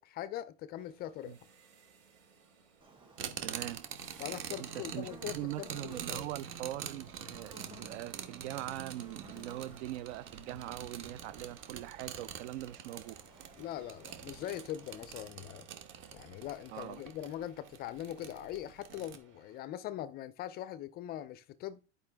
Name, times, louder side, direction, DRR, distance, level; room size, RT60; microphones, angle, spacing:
voice 1, 0.0-1.4 4.2-6.2 13.6-15.6 16.1-21.8, left 12 dB, 25° left, 0.4 m, -42 dB
sound 1, 0.8-19.6, right 4 dB, 90° right, 4.4 m, -63 dB
Buzz, 2.8-15.1, right 2 dB, 15° right, 2.2 m, -57 dB
sound 2, 3.2-19.2, right 8 dB, 35° right, 1.1 m, -46 dB
voice 2, 3.4-3.8 4.6-13.1 16.7-17.0, right 14 dB, 60° right, 0.6 m, -42 dB
10.5 x 5.2 x 3.4 m
supercardioid pair, 140°, 38 cm